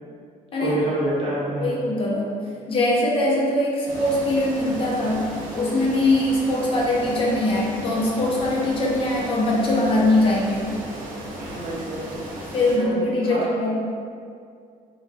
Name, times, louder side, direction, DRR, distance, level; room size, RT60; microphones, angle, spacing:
voice 1, 0.6-1.7 11.4-12.0 12.7-13.5, right 1 dB, 40° right, -6 dB, 0.7 m, -27 dB
voice 2, 1.6-2.3 2.7-10.7 12.5-13.7, left 1 dB, 40° left, -4 dB, 0.5 m, -22 dB
sound 1, 3.9-12.8, right 1 dB, 90° right, 0.7 m, -35 dB
3.2 x 2.2 x 2.6 m, 2.2 s
cardioid pair, 145°, 14 cm